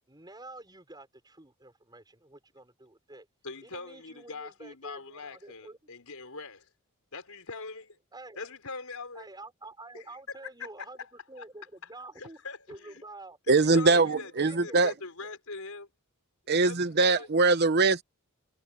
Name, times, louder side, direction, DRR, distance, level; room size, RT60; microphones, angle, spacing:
voice 1, 0.1-3.3 3.6-5.8 8.1-8.4 9.1-12.4 12.7-14.9 17.1-17.3, right 2 dB, 20° right, 5.8 m, -48 dB
voice 2, 3.4-6.7 7.1-8.0 8.3-9.3 9.9-11.1 11.4-11.5 11.8-11.9 12.1-13.0 13.5-15.9 16.5-17.3, left 4 dB, 80° left, 4.8 m, -42 dB
voice 3, 13.5-14.9 16.5-18.0, right 3 dB, 50° right, 0.9 m, -22 dB
head